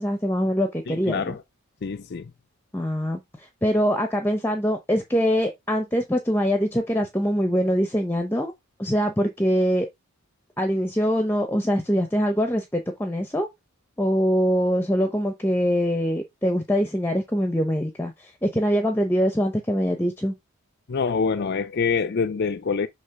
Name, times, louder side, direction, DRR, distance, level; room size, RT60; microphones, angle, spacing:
voice 1, 0.0-1.4 2.7-8.5 8.8-9.9 10.6-13.5 14.0-20.3, equal, 10° left, 0.7 m, -23 dB
voice 2, 0.9-1.4 1.8-2.3 20.9-22.9, left 5 dB, 45° left, 0.4 m, -25 dB
6.5 x 2.9 x 5.8 m
head